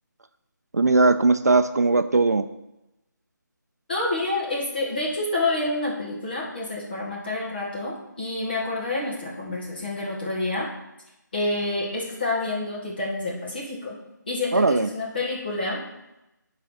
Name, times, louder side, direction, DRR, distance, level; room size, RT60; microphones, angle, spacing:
voice 1, 0.7-2.5 14.5-14.9, right 3 dB, 55° right, 9 dB, 0.5 m, -19 dB
voice 2, 3.9-10.7 11.3-14.0 14.3-15.8, left 2 dB, 30° left, -4 dB, 2.0 m, -28 dB
10.5 x 3.9 x 5.9 m, 0.92 s
figure-of-eight pair, 180°, 11 cm